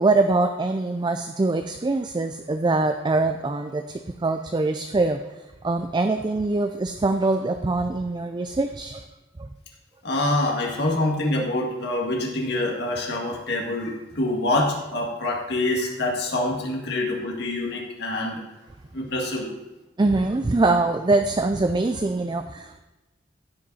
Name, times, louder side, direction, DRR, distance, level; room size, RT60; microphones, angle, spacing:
voice 1, 0.0-5.2 5.6-9.0 9.4-9.5 20.0-22.8, right 3 dB, 25° right, 7 dB, 0.4 m, -23 dB
voice 2, 10.0-18.4 18.9-19.5, left 2 dB, 60° left, -1 dB, 2.0 m, -26 dB
15.5 x 5.3 x 4.1 m, 1.1 s
head